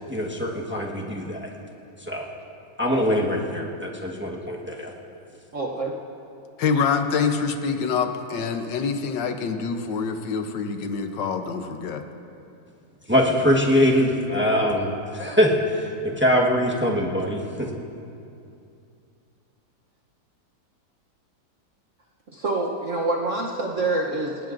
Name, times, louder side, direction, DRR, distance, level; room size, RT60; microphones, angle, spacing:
voice 1, 0.0-1.5 2.0-2.3 2.8-4.9 13.1-17.7, equal, 10° right, -2 dB, 0.9 m, -23 dB
voice 2, 5.5-5.9 22.3-24.5, right 2 dB, 50° right, -1 dB, 1.0 m, -26 dB
voice 3, 6.6-12.0, left 5 dB, 70° left, 6 dB, 1.5 m, -26 dB
20.0 x 17.5 x 2.6 m, 2.6 s
omnidirectional pair, 2.2 m